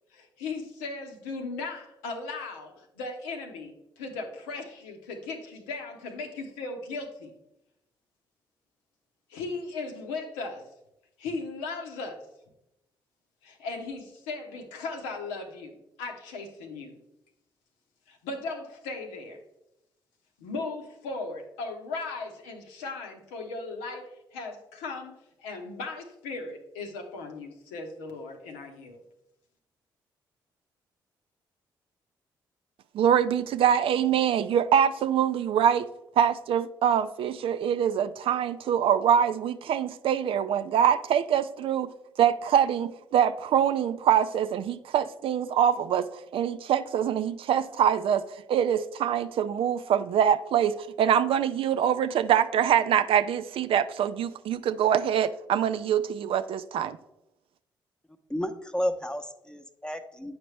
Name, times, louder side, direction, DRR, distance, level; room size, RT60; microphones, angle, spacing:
voice 1, 0.1-7.3 9.3-10.7 11.2-12.2 13.4-17.0 18.1-19.4 20.4-29.0, left 3 dB, 75° left, 3 dB, 0.9 m, -37 dB
voice 2, 32.9-35.9 36.2-41.9 42.2-48.2 48.5-57.0, right 9 dB, 55° right, 12 dB, 0.4 m, -24 dB
voice 3, 58.3-60.4, equal, 5° left, 8 dB, 0.8 m, -32 dB
8.6 x 5.0 x 3.2 m, 0.88 s
figure-of-eight pair, 40°, 11 cm